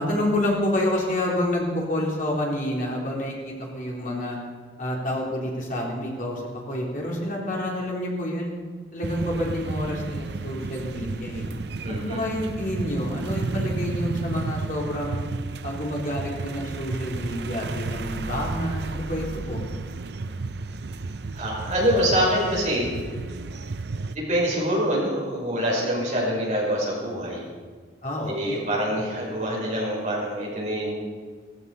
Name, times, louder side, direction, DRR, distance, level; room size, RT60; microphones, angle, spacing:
voice 1, 0.0-4.4 4.8-6.4 6.7-8.6 8.9-11.4 11.9-15.3 15.6-19.6 28.0-28.8, left 1 dB, 40° left, -2 dB, 3.5 m, -28 dB
sound 1, 9.0-24.2, right 3 dB, 55° right, 0.6 m, -32 dB
voice 2, 11.8-12.2 21.4-22.9 24.1-27.4 28.3-30.9, equal, 40° right, -4 dB, 5.7 m, -25 dB
16.5 x 15.5 x 5.5 m, 1.5 s
head